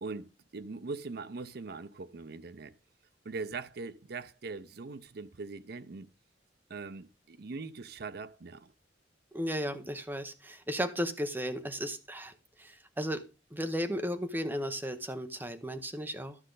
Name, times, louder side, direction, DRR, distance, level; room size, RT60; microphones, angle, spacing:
voice 1, 0.0-2.7 3.2-6.1 6.7-8.7, right 4 dB, 55° right, 0.6 m, -41 dB
voice 2, 9.3-13.2 13.5-16.4, equal, 10° right, 0.9 m, -35 dB
12.0 x 6.4 x 3.9 m
head